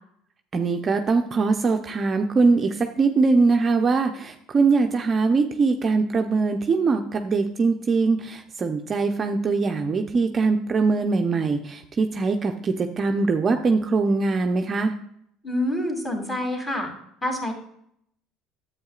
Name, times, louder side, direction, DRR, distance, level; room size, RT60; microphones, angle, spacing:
voice 1, 0.5-14.9, right 4 dB, 30° right, 4 dB, 0.6 m, -22 dB
voice 2, 15.4-16.9 17.2-17.5, left 1 dB, 20° left, 1 dB, 2.7 m, -27 dB
10.5 x 8.2 x 2.4 m, 0.70 s
cardioid pair, 115°, 0 cm